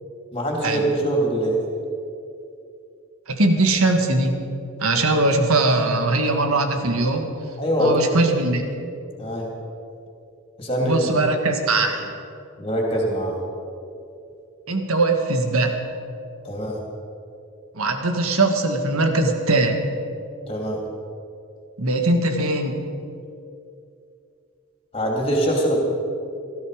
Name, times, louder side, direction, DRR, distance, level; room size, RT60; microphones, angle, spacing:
voice 1, 0.3-1.6 7.6-8.1 9.2-9.5 10.6-11.0 12.6-13.4 16.4-16.8 20.5-20.8 24.9-25.8, equal, 25° left, -1 dB, 3.1 m, -23 dB
voice 2, 3.3-4.4 4.8-7.3 7.8-8.6 10.8-12.1 14.7-15.8 17.7-19.8 21.8-22.8, right 2 dB, 85° right, 5 dB, 1.7 m, -21 dB
18.0 x 13.5 x 5.1 m, 2.6 s
head